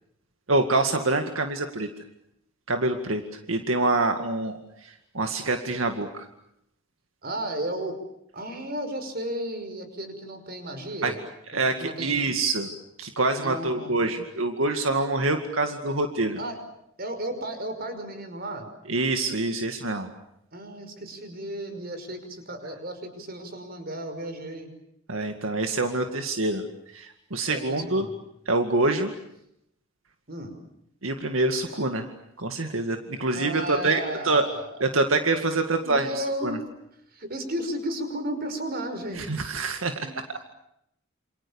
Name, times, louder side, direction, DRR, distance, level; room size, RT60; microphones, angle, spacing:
voice 1, 0.5-1.9 2.7-3.2 3.5-6.3 11.0-11.1 11.5-12.7 13.0-16.4 18.9-20.1 25.1-26.6 26.9-28.1 28.5-29.1 31.0-32.1 32.4-34.5 34.8-36.6 39.2-39.9, right 2 dB, 85° right, 6 dB, 2.1 m, -26 dB
voice 2, 7.2-8.0 8.3-11.2 11.5-12.2 13.4-14.0 16.4-16.6 17.0-18.7 20.5-24.7 27.5-28.2 30.3-30.5 33.3-34.9 35.8-36.6 37.1-39.3 40.0-40.2, right 1 dB, 50° right, 8 dB, 5.6 m, -34 dB
28.0 x 27.5 x 7.1 m, 0.77 s
head